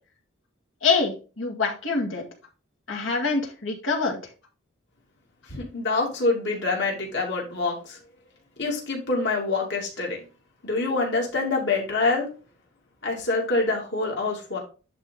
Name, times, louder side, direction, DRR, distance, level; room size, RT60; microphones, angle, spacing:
voice 1, 0.8-2.2 2.9-4.2, left 4 dB, 75° left, 1 dB, 2.0 m, -25 dB
voice 2, 5.5-8.0 8.6-10.2 10.6-12.3 13.0-14.6, left 3 dB, 60° left, -1 dB, 2.7 m, -26 dB
11.0 x 3.7 x 3.8 m, 0.34 s
head